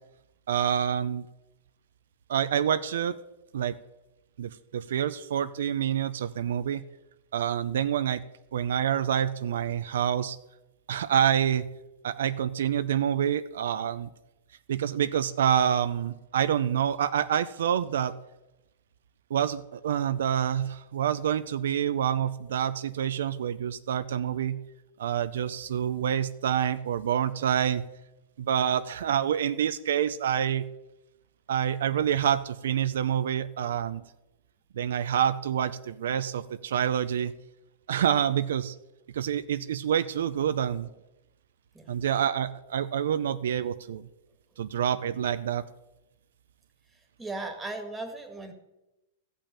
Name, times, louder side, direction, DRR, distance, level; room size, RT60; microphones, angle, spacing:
voice 1, 0.5-1.2 2.3-3.2 3.5-3.8 4.4-6.8 7.3-8.2 8.5-10.4 10.9-11.7 12.0-14.1 14.7-18.1 19.3-24.6 25.0-27.8 28.4-30.6 31.5-34.0 34.7-37.3 37.9-38.7 39.1-40.9 41.9-44.0 44.6-45.7, right 9 dB, 80° right, 12 dB, 0.6 m, -27 dB
voice 2, 46.9-48.5, right 2 dB, 5° right, 4 dB, 1.8 m, -37 dB
14.0 x 5.6 x 8.8 m, 0.98 s
hypercardioid pair, 145°, 0 cm